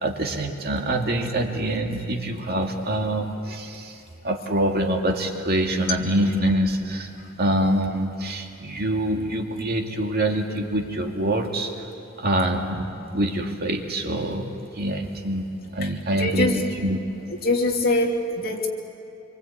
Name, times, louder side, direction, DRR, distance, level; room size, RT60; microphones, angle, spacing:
voice 1, 0.0-4.0 4.2-7.1 7.4-11.7 12.2-17.0, right 1 dB, 50° right, 2 dB, 2.3 m, -25 dB
voice 2, 15.8-16.6 17.3-18.7, left 2 dB, 50° left, 0 dB, 2.9 m, -24 dB
26.5 x 24.0 x 8.5 m, 2.6 s
head